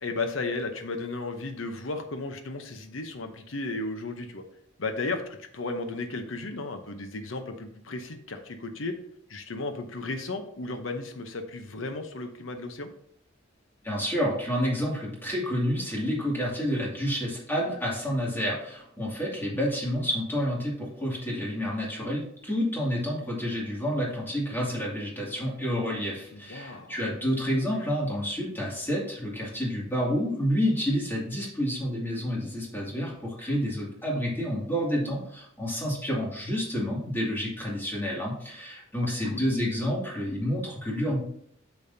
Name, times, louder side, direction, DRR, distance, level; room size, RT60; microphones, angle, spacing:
voice 1, 0.0-4.4 4.8-5.2 5.5-8.9 9.3-12.9 26.3-27.1 27.7-27.9 39.0-39.4, left 3 dB, 75° left, 6 dB, 0.8 m, -34 dB
voice 2, 13.8-41.2, equal, 10° left, -4 dB, 2.4 m, -29 dB
8.5 x 6.3 x 2.7 m, 0.68 s
head